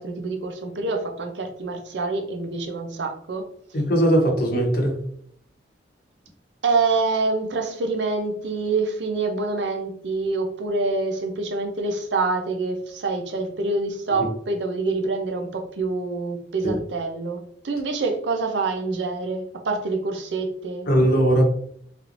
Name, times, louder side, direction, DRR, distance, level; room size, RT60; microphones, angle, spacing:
voice 1, 0.0-3.5 6.6-20.9, right 3 dB, 85° right, 5 dB, 0.6 m, -26 dB
voice 2, 3.7-5.0 16.6-16.8 20.9-21.4, right 1 dB, 60° left, 1 dB, 0.9 m, -19 dB
3.2 x 3.0 x 2.5 m, 0.65 s
head